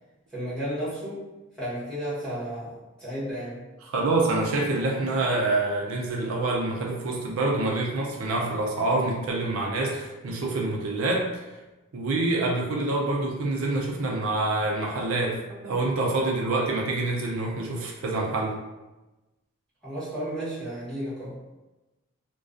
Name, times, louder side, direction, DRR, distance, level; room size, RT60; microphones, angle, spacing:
voice 1, 0.3-1.3 1.6-3.6 19.8-21.4, equal, 5° left, -13 dB, 1.0 m, -33 dB
voice 2, 3.9-11.5 11.9-18.6, right 2 dB, 75° right, -1 dB, 0.4 m, -26 dB
2.3 x 2.2 x 2.4 m, 1.1 s
head